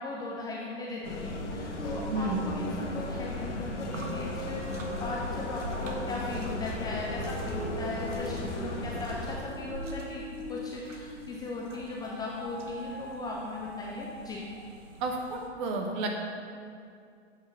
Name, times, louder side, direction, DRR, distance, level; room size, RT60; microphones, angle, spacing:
voice 1, 0.0-14.4, left 2 dB, 10° left, -4 dB, 0.4 m, -38 dB
sound 1, 1.0-9.4, left 2 dB, 75° left, 1.2 m, -36 dB
sound 2, 1.3-11.5 12.0-14.8, right 1 dB, 45° left, 1.8 m, -43 dB
voice 2, 2.1-2.5 15.0-16.1, right 3 dB, 40° right, 2 dB, 1.2 m, -31 dB
sound 3, 3.8-15.5, right 2 dB, 80° right, 1.2 m, -45 dB
8.0 x 5.0 x 5.0 m, 2.3 s
hypercardioid pair, 115°, 36 cm